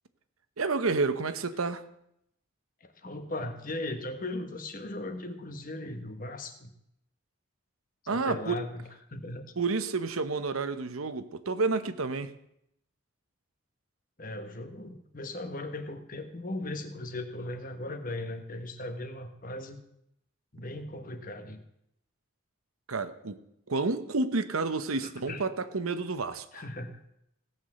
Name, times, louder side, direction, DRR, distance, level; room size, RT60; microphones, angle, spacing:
voice 1, 0.6-1.8 8.1-8.6 9.6-12.3 22.9-23.4 23.7-26.6, right 3 dB, 90° right, 11 dB, 0.9 m, -30 dB
voice 2, 2.8-6.7 8.0-9.5 14.2-19.8 20.5-21.6 25.0-25.4 26.5-26.9, left 2 dB, 40° left, 7 dB, 1.3 m, -38 dB
17.0 x 6.1 x 7.8 m, 0.77 s
head